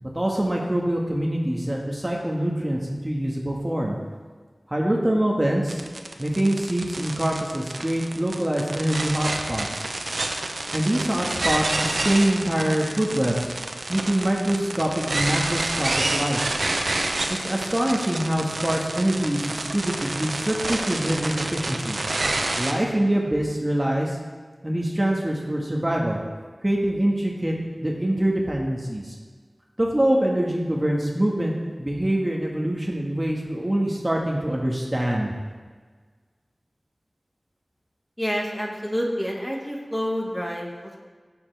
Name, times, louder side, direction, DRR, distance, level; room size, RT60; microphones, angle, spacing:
voice 1, 0.0-4.0 4.7-5.8 6.2-9.9 10.7-13.4 13.9-16.4 17.3-22.0 22.6-24.2 24.6-26.2 26.6-29.1 29.8-31.5 31.8-35.3, right 1 dB, 25° right, -2 dB, 1.6 m, -24 dB
sound 1, 5.7-22.7, right 2 dB, 80° right, 0.9 m, -28 dB
voice 2, 38.2-41.0, equal, 10° left, -1 dB, 1.8 m, -28 dB
16.5 x 7.0 x 3.4 m, 1.5 s
wide cardioid pair, 45°, 0 cm